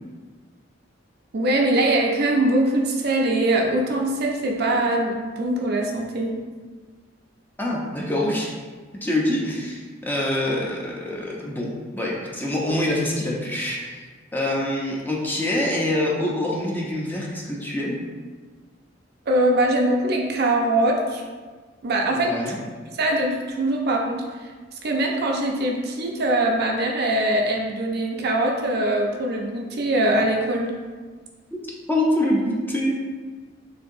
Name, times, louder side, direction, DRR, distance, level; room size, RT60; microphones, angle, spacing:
voice 1, 1.3-6.3 19.3-21.2 21.8-22.5 22.8-24.5 24.8-30.7, right 1 dB, 55° right, 1 dB, 0.6 m, -22 dB
voice 2, 7.6-8.5 9.0-14.1 14.3-18.0 22.1-22.6 31.9-33.0, left 1 dB, 10° left, -3 dB, 0.7 m, -25 dB
6.4 x 2.8 x 2.6 m, 1.4 s
head